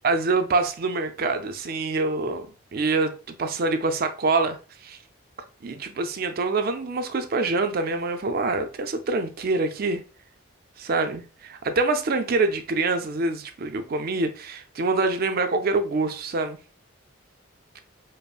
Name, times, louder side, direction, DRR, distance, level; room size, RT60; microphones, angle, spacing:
voice 1, 0.0-4.6 4.8-5.0 5.6-10.0 10.8-16.6, right 3 dB, 50° right, 0.4 m, -25 dB
5.2 x 2.0 x 2.4 m
head